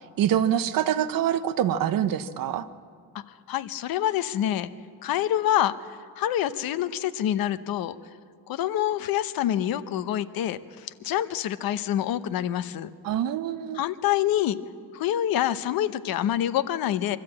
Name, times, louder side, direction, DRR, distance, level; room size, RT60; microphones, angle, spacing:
voice 1, 0.2-2.7 13.0-13.8, right 10 dB, 55° right, 12 dB, 0.8 m, -25 dB
voice 2, 3.1-4.7 5.0-8.0 8.5-12.9 13.7-14.6 14.9-17.2, left 11 dB, 60° left, 13 dB, 0.8 m, -26 dB
24.0 x 13.0 x 8.7 m, 2.1 s
cardioid pair, 180°, 41 cm